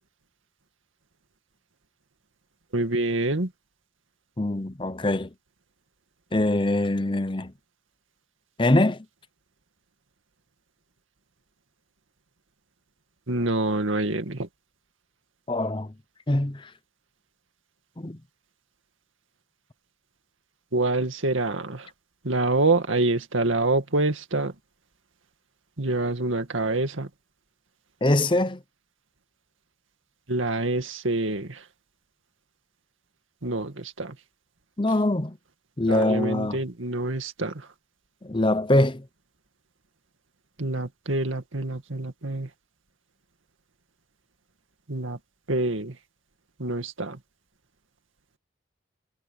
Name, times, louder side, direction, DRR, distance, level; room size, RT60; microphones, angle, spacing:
voice 1, 2.7-3.5 13.3-14.5 20.7-21.9 22.2-24.5 25.8-27.1 30.3-31.6 33.4-34.1 35.9-37.5 40.6-42.5 44.9-45.2 45.5-45.9 46.6-47.2, right 2 dB, 85° right, 2.2 m, -26 dB
voice 2, 4.4-5.3 6.3-7.5 8.6-9.0 15.5-15.9 16.3-16.7 18.0-18.2 28.0-28.6 34.8-35.4 35.8-36.6 38.2-39.0, left 1 dB, 25° left, 0.8 m, -23 dB
head